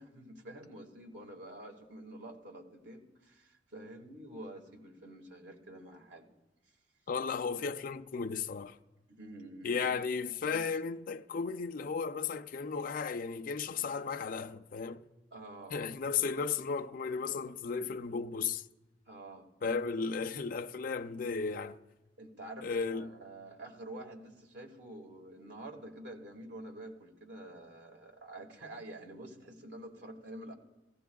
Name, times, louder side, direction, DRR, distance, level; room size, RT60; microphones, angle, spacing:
voice 1, 0.0-6.3 9.1-10.0 10.5-10.7 15.3-15.8 19.1-19.5 22.2-30.5, right 1 dB, 75° right, 1.9 m, -48 dB
voice 2, 7.1-8.8 9.6-15.0 15.7-18.7 19.6-21.8 22.6-23.1, left 5 dB, 50° left, 0.4 m, -35 dB
19.5 x 16.0 x 2.3 m
head